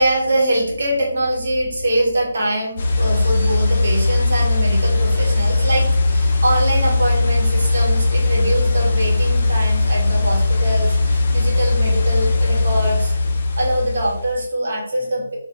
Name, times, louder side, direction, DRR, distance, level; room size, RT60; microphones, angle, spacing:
voice 1, 0.0-13.1 13.6-15.4, right 1 dB, 60° right, -2 dB, 0.9 m, -23 dB
sound 1, 2.8-14.4, left 2 dB, 45° left, 0.4 m, -18 dB
2.4 x 2.1 x 2.6 m, 0.63 s
figure-of-eight pair, 145°, 0 cm